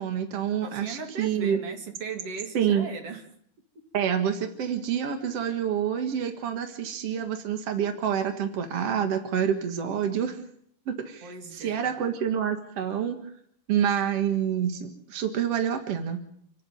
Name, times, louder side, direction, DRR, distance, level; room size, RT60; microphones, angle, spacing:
voice 1, 0.0-1.6 2.5-2.9 3.9-10.4 10.9-13.2 13.7-16.2, right 8 dB, 70° right, 6 dB, 1.4 m, -27 dB
voice 2, 0.6-3.3 11.2-11.9, right 5 dB, 35° right, 4 dB, 3.1 m, -38 dB
28.5 x 11.0 x 9.3 m, 0.66 s
omnidirectional pair, 5.4 m